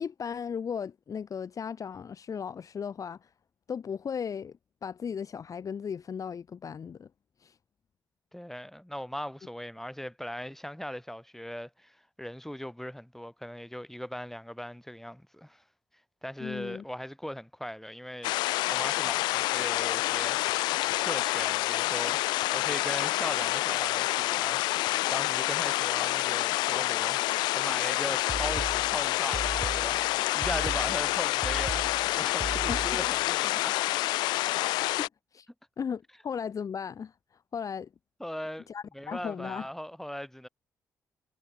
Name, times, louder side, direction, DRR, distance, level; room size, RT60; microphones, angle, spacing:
voice 1, 0.0-3.3 3.7-4.5 4.8-7.1 7.4-7.5 16.4-16.8 32.7-32.8 34.4-34.6 35.0-35.5 35.8-37.1 37.5-37.9 38.7-39.7, left 7 dB, 50° left, 1.0 m, -36 dB
voice 2, 8.3-15.6 16.2-20.4 21.0-22.2 22.5-33.7 38.2-38.7 38.9-40.5, equal, 5° left, 5.1 m, -39 dB
sound 1, 18.2-35.1, left 19 dB, 75° left, 0.4 m, -28 dB
sound 2, 28.3-33.3, right 4 dB, 40° right, 2.6 m, -37 dB
hypercardioid pair, 45°, 7 cm